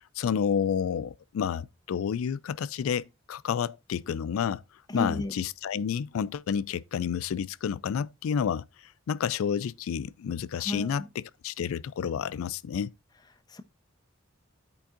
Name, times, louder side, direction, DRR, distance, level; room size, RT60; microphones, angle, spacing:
voice 1, 0.2-4.6 4.9-12.9, left 7 dB, 90° left, 0.3 m, -30 dB
voice 2, 4.9-5.3 10.7-11.1 13.5-13.6, left 1 dB, 20° left, 0.5 m, -33 dB
13.0 x 4.5 x 2.5 m
head